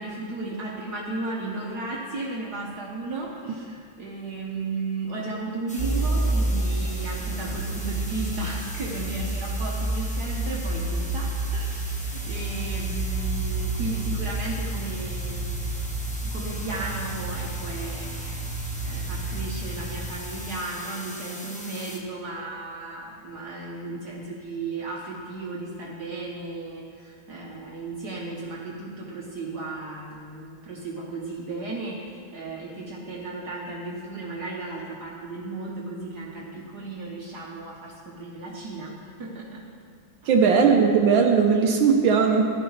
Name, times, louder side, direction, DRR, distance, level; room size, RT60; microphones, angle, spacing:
voice 1, 0.0-15.6 16.2-18.5 18.8-38.9 39.2-39.6 40.2-40.3, right 2 dB, 60° right, -3 dB, 1.6 m, -35 dB
sound 1, 5.7-22.0, equal, 10° left, 0.5 m, -40 dB
sound 2, 5.8-20.2, right 2 dB, 40° right, 1.7 m, -29 dB
voice 2, 40.3-42.5, right 6 dB, 80° right, 2 dB, 1.5 m, -18 dB
15.0 x 11.5 x 3.2 m, 2.2 s
omnidirectional pair, 2.1 m